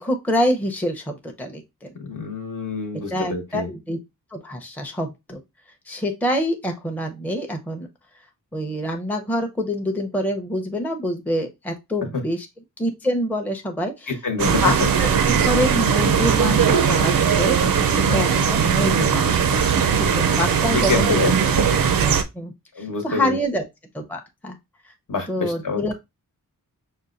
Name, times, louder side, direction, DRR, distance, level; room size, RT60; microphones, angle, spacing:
voice 1, 0.0-1.9 3.1-4.0 4.3-5.4 5.9-7.9 8.5-12.5 12.8-14.1 14.6-14.7 15.0-21.2 22.3-23.6 23.9-24.6 25.3-25.9, equal, 5° left, 0.6 m, -26 dB
voice 2, 2.0-3.7 12.1-12.2 14.1-14.6 15.2-15.3 18.0-18.3 20.7-21.3 21.6-21.8 22.7-23.4 25.1-25.9, left 4 dB, 60° left, 1.1 m, -27 dB
sound 1, 14.4-22.2, right 6 dB, 70° right, 0.5 m, -19 dB
5.4 x 2.2 x 2.5 m
cardioid pair, 65°, 36 cm